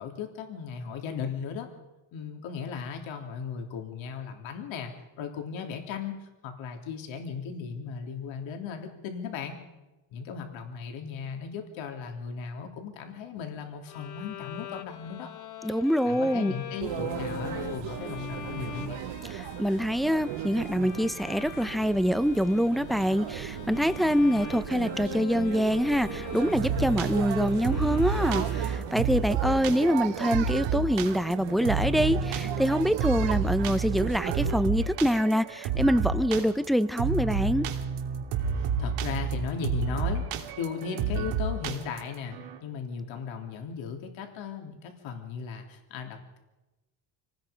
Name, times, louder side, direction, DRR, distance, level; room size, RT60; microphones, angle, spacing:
voice 1, 0.0-1.7 2.1-4.9 5.2-9.6 10.1-15.3 16.1-19.0 38.6-46.4, left 6 dB, 70° left, 4 dB, 3.4 m, -36 dB
Bowed string instrument, 13.9-29.2, left 8 dB, 40° left, 1.2 m, -42 dB
voice 2, 15.6-16.5 19.2-37.7, equal, ahead, 12 dB, 0.6 m, -25 dB
sound 1, 16.8-34.6, right 12 dB, 65° right, 1.3 m, -37 dB
sound 2, 26.5-42.6, right 5 dB, 85° right, 2.9 m, -30 dB
26.5 x 19.0 x 5.2 m, 1.1 s
cardioid pair, 135°, 47 cm